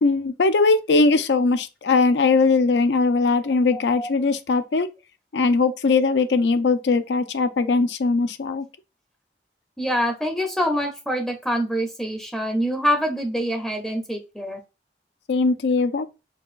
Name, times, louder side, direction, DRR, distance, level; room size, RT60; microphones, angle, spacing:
voice 1, 0.0-4.9 5.3-8.6 15.3-16.1, left 3 dB, 80° left, 0.5 m, -20 dB
voice 2, 3.7-4.1 9.8-14.6, equal, 5° left, 0.6 m, -25 dB
5.0 x 2.3 x 2.4 m
head